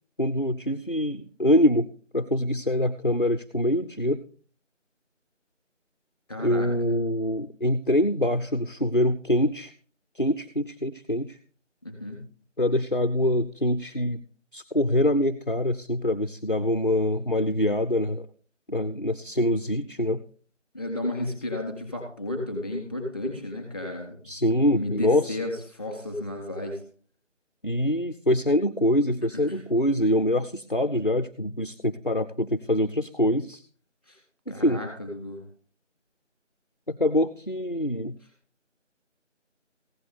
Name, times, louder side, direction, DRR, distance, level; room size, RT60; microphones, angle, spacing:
voice 1, 0.2-1.9 2.1-4.2 6.4-9.7 10.2-11.3 12.6-14.2 14.5-18.3 18.7-20.2 24.3-25.4 27.6-33.6 34.5-34.8 36.9-38.1, left 1 dB, 45° left, 8 dB, 0.6 m, -24 dB
voice 2, 6.3-6.7 11.8-12.2 20.7-24.2 24.7-26.8 29.5-29.6 34.1-34.2 34.5-35.4, left 1 dB, 20° left, 1 dB, 3.5 m, -33 dB
16.0 x 10.5 x 3.3 m, 0.43 s
figure-of-eight pair, 175°, 37 cm